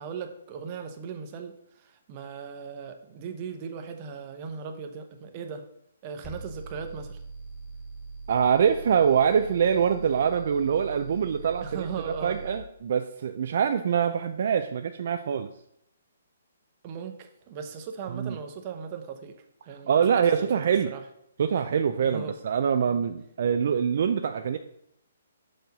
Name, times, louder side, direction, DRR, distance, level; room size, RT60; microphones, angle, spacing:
voice 1, 0.0-5.7 6.0-7.2 11.6-12.4 16.8-19.4 19.7-21.0 22.0-22.4, right 6 dB, 30° right, 0.8 m, -38 dB
sound 1, 6.2-12.6, right 4 dB, 5° left, 1.1 m, -42 dB
voice 2, 8.3-11.9 12.2-15.5 18.1-18.4 19.9-20.9 21.4-24.6, right 7 dB, 55° right, 0.4 m, -24 dB
6.3 x 4.6 x 5.2 m
hypercardioid pair, 155°, 0 cm